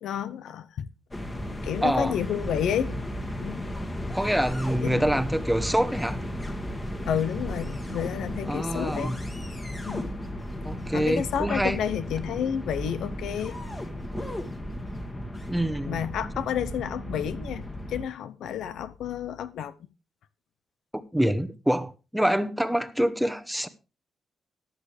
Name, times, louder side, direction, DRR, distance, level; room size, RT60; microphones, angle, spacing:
voice 1, 0.0-0.9 1.6-2.9 3.4-3.7 4.8-5.1 7.1-9.1 9.9-10.1 10.9-13.5 15.9-17.6 17.9-19.7, left 9 dB, 90° left, 0.8 m, -30 dB
sound 1, 1.1-18.0, equal, 20° left, 2.0 m, -34 dB
voice 2, 1.8-2.2 4.1-6.2 8.5-9.2 10.6-11.8 15.5-16.0 20.9-23.7, equal, ahead, 1.0 m, -26 dB
14.5 x 10.5 x 3.3 m
cardioid pair, 120°, 0 cm